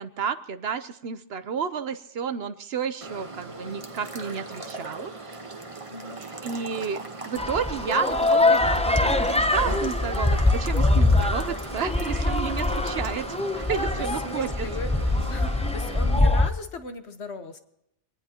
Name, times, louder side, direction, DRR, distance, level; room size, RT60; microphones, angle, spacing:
voice 1, 0.0-5.4 6.4-13.4 13.7-14.7, right 7 dB, 60° right, 13 dB, 1.0 m, -31 dB
sound 1, 3.0-16.2, right 3 dB, 30° right, 1.2 m, -38 dB
voice 2, 5.9-6.2 14.0-14.9 15.3-17.6, left 2 dB, 65° left, 7 dB, 1.5 m, -38 dB
sound 2, 7.4-16.5, left 2 dB, 10° left, 0.5 m, -23 dB
23.5 x 18.5 x 2.9 m, 0.80 s
omnidirectional pair, 1.2 m